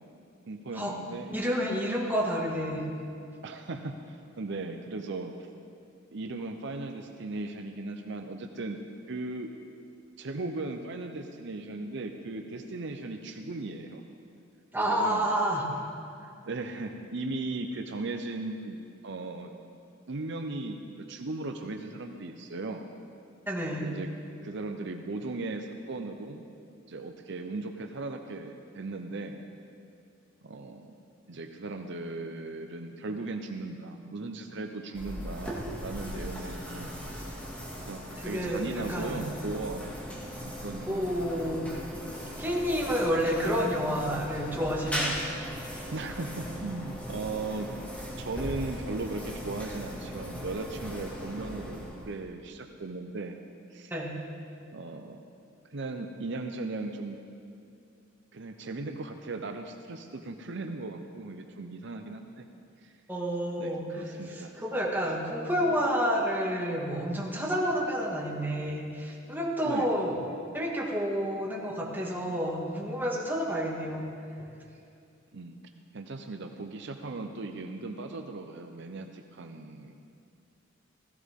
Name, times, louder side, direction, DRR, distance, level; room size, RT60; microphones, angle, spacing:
voice 1, 0.5-1.4 3.4-5.5 6.1-8.8 9.1-9.5 10.2-14.0 14.9-15.3 16.5-19.5 20.1-22.9 23.8-24.1 24.4-26.4 26.9-29.4 30.4-30.9 31.3-35.6 35.8-37.3 37.9-39.8 40.6-41.1 45.9-47.7 48.2-53.4 53.7-53.9 54.7-55.2 55.7-57.2 58.3-62.5 62.8-62.9 63.6-64.5 69.6-69.9 75.3-75.6 75.9-80.0, right 2 dB, 65° right, 5 dB, 0.7 m, -37 dB
voice 2, 1.3-2.8 14.7-15.6 23.5-23.9 38.2-39.2 40.9-41.7 42.4-45.1 53.9-54.1 63.1-63.8 64.3-74.1, equal, 10° right, -3 dB, 2.0 m, -29 dB
sound 1, 34.9-52.3, equal, 5° left, 2.3 m, -38 dB
16.0 x 15.5 x 3.7 m, 2.5 s
head